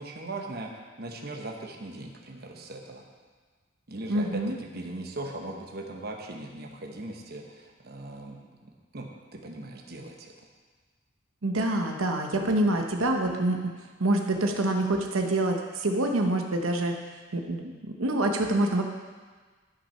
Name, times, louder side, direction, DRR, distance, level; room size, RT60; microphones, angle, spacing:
voice 1, 0.0-3.0 3.9-10.3, right 2 dB, 50° right, 1 dB, 1.0 m, -39 dB
voice 2, 4.1-4.5 11.4-13.6 14.0-17.0 17.3-18.8, right 1 dB, 90° right, 3 dB, 0.9 m, -26 dB
11.5 x 6.0 x 5.6 m, 1.4 s
head